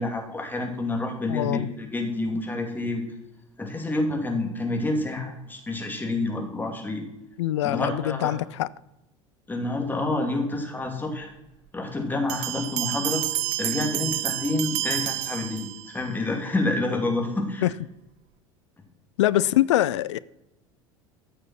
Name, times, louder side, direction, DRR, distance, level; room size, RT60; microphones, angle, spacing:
voice 1, 0.0-3.0 3.6-7.0 7.6-8.3 9.5-11.3 11.7-13.2 13.6-17.7, left 2 dB, 10° left, 2.7 m, -28 dB
voice 2, 1.3-1.7 7.4-8.7 17.6-17.7 19.2-20.2, left 14 dB, 65° left, 0.5 m, -23 dB
sound 1, 12.3-16.1, right 17 dB, 50° right, 0.6 m, -29 dB
13.5 x 6.8 x 5.7 m
figure-of-eight pair, 70°, 16 cm